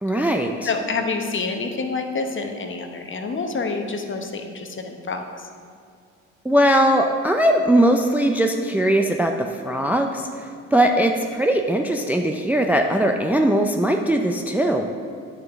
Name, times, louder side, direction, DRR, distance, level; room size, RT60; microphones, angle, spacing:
voice 1, 0.0-0.7 6.4-9.3 9.6-14.9, right 1 dB, 5° right, 3 dB, 0.5 m, -20 dB
voice 2, 0.6-5.5 10.8-10.9, left 4 dB, 35° left, 5 dB, 1.0 m, -28 dB
9.8 x 6.7 x 3.6 m, 2.3 s
hypercardioid pair, 55°, 36 cm